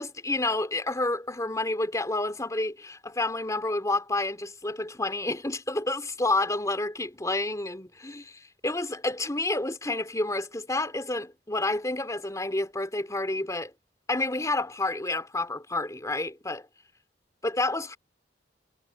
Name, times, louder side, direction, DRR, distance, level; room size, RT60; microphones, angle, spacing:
voice 1, 0.0-13.7 14.1-16.7 17.4-18.0, left 2 dB, 20° left, 3.2 m, -29 dB
head